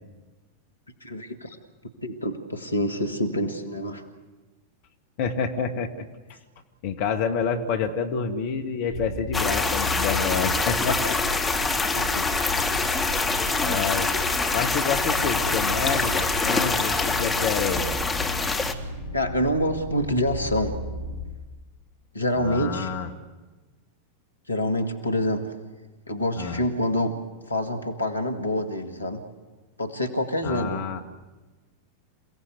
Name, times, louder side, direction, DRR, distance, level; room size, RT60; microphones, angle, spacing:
voice 1, 1.0-1.6 2.0-4.0 11.9-12.3 19.1-20.8 22.1-22.9 24.5-25.5 26.1-27.2 27.5-29.2 29.8-30.8, left 1 dB, 80° left, 6 dB, 2.2 m, -26 dB
voice 2, 5.2-6.1 6.8-11.2 13.6-14.1 14.5-17.9 22.4-23.1 26.4-26.7 30.4-31.0, left 6 dB, 50° left, 5 dB, 2.0 m, -28 dB
sound 1, 8.9-21.2, equal, 65° left, 6.1 m, -34 dB
sound 2, 9.3-18.7, left 3 dB, 10° left, 2.2 m, -25 dB
28.5 x 17.0 x 8.2 m, 1.2 s
figure-of-eight pair, 90°, 0 cm